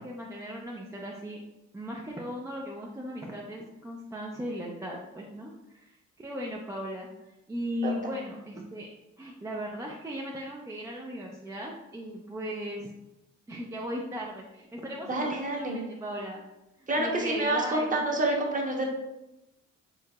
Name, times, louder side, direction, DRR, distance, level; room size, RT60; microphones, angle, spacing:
voice 1, 0.0-1.4 1.7-8.9 9.2-12.9 13.5-16.4 16.8-18.0, equal, 10° right, -2 dB, 0.4 m, -37 dB
voice 2, 15.1-15.8 16.9-18.9, right 1 dB, 25° right, 0 dB, 0.9 m, -28 dB
4.6 x 2.8 x 2.3 m, 0.94 s
cardioid pair, 90°, 30 cm